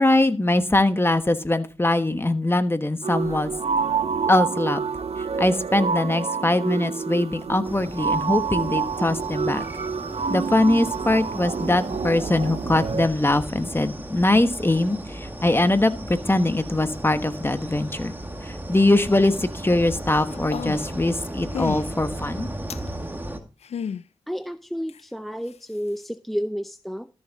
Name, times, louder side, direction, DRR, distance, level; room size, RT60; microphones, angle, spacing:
voice 1, 0.0-3.5 4.3-4.8 5.2-9.6 10.3-18.2 18.4-22.5, left 2 dB, 20° left, 10 dB, 1.2 m, -22 dB
sound 1, 3.0-13.1, right 6 dB, 75° right, 0.6 m, -28 dB
sound 2, 7.6-23.4, right 1 dB, 20° right, 1.8 m, -36 dB
sound 3, 20.3-21.0 21.5-21.8 22.7-22.9 23.6-24.0 24.9-25.0, left 7 dB, 85° left, 0.4 m, -31 dB
voice 2, 24.3-27.1, equal, ahead, 10 dB, 0.6 m, -31 dB
13.5 x 7.1 x 4.0 m, 0.33 s
cardioid pair, 55°, 11 cm